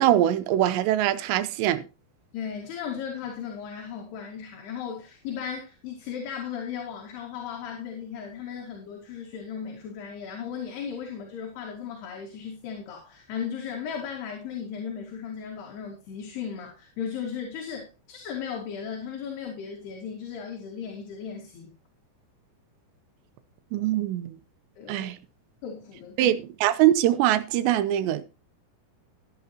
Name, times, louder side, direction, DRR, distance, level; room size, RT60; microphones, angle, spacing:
voice 1, 0.0-1.8 23.7-24.4 24.9-25.2 26.2-28.2, right 13 dB, 80° right, 2.9 m, -23 dB
voice 2, 2.3-21.7 24.8-25.1 25.6-26.4, left 7 dB, 65° left, 4.0 m, -36 dB
15.5 x 10.0 x 2.9 m
omnidirectional pair, 5.3 m